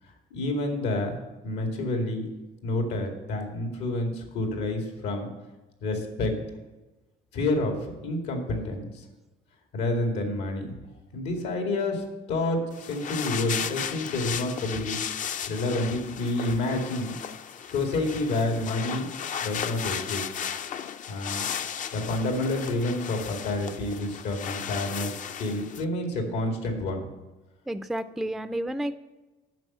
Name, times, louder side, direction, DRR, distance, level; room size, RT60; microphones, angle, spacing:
voice 1, 0.3-1.2 1.4-2.3 2.6-5.3 5.8-6.6 7.3-7.7 8.0-9.1 9.7-10.7 11.1-15.0 15.5-17.1 17.7-19.1 19.4-20.2 21.1-21.5 21.9-27.1, left 2 dB, 85° left, 3 dB, 2.3 m, -29 dB
sound 1, 12.7-25.8, left 8 dB, 50° left, 0.6 m, -35 dB
voice 2, 27.7-28.9, right 1 dB, ahead, 12 dB, 0.4 m, -31 dB
9.1 x 6.6 x 7.3 m, 1.1 s
cardioid pair, 110°, 17 cm